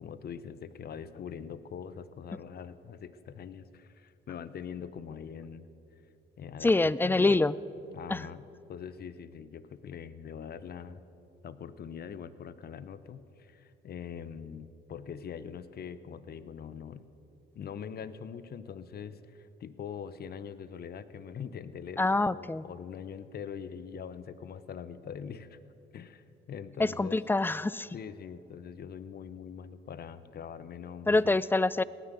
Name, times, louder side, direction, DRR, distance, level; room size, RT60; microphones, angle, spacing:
voice 1, 0.0-5.7 6.4-7.4 7.9-11.0 11.4-17.1 17.5-25.6 25.9-27.2 27.9-31.4, left 7 dB, 50° left, 14 dB, 0.8 m, -43 dB
voice 2, 6.6-7.5 8.1-8.3 22.0-22.6 26.8-27.9 31.1-31.8, left 2 dB, 10° left, 19 dB, 0.4 m, -25 dB
18.0 x 10.0 x 6.9 m, 2.8 s
cardioid pair, 90°, 20 cm